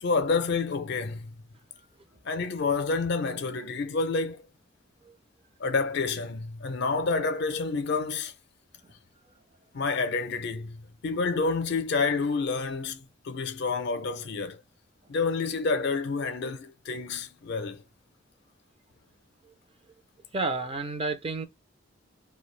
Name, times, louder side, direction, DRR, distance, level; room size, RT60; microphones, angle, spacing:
voice 1, 0.0-1.4 2.2-4.4 5.6-8.3 9.7-14.6 15.1-17.8, left 4 dB, 60° left, 0.5 m, -29 dB
voice 2, 20.3-21.5, right 3 dB, 30° right, 0.5 m, -30 dB
2.4 x 2.2 x 3.1 m
head